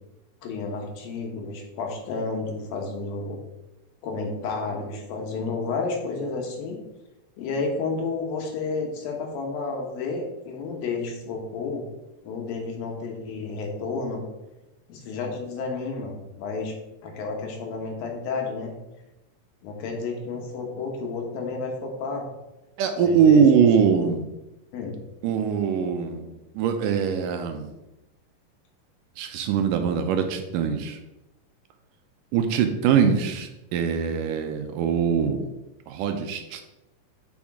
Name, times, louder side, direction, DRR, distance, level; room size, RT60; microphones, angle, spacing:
voice 1, 0.4-3.4 4.0-6.8 7.4-11.8 12.2-14.2 14.9-16.7 17.0-18.7 19.6-22.3 23.0-23.5 24.7-25.0, left 4 dB, 90° left, 1 dB, 3.1 m, -31 dB
voice 2, 22.8-24.3 25.2-26.3 26.6-27.7 29.2-31.0 32.3-35.4 35.9-36.6, right 7 dB, 80° right, 6 dB, 2.1 m, -22 dB
8.6 x 5.2 x 3.6 m, 0.97 s
omnidirectional pair, 4.0 m